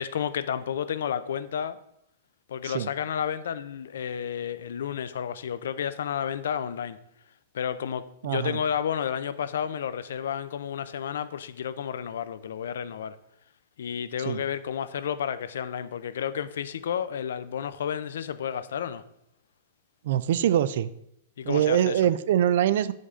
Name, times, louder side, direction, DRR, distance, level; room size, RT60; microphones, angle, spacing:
voice 1, 0.0-1.8 2.5-7.0 7.5-13.1 13.8-19.0 21.4-22.0, left 8 dB, 85° left, 14 dB, 0.4 m, -31 dB
voice 2, 8.2-8.6 14.3-14.4 20.0-20.9 21.4-22.9, right 11 dB, 60° right, 16 dB, 0.4 m, -23 dB
8.1 x 5.2 x 3.7 m, 0.77 s
supercardioid pair, 160°, 0 cm